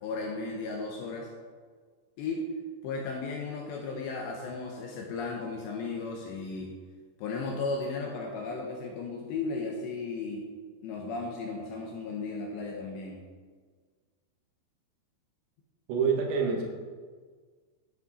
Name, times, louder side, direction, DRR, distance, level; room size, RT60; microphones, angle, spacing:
voice 1, 0.0-1.3 2.2-2.5 2.8-6.7 7.2-10.5 10.8-13.2, left 3 dB, 75° left, 0 dB, 2.7 m, -35 dB
voice 2, 15.9-16.6, right 5 dB, 80° right, 0 dB, 4.2 m, -26 dB
11.0 x 8.5 x 4.2 m, 1.6 s
omnidirectional pair, 6.0 m